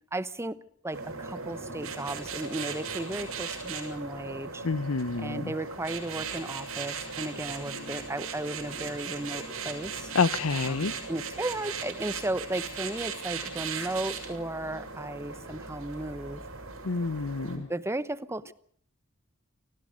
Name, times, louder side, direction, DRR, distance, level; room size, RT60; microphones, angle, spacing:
voice 1, 0.1-0.6 0.8-4.7 5.2-10.1 10.7-16.4 17.5-18.5, right 1 dB, 15° right, 0.9 m, -35 dB
sound 1, 0.9-17.6, right 5 dB, 85° right, 6.5 m, -38 dB
voice 2, 4.6-5.5 10.1-10.9 16.8-17.7, left 4 dB, 90° left, 0.8 m, -28 dB
sound 2, 7.4-9.8, right 3 dB, 50° right, 5.0 m, -51 dB
28.0 x 19.0 x 5.2 m
head